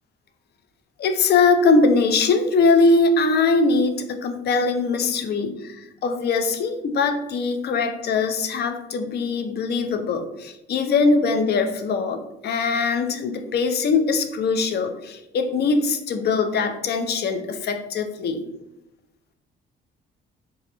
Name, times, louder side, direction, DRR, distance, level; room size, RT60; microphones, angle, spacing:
voice 1, 1.0-18.5, left 4 dB, 50° left, 7 dB, 0.4 m, -21 dB
2.3 x 2.0 x 2.9 m, 0.90 s
cardioid pair, 75°, 21 cm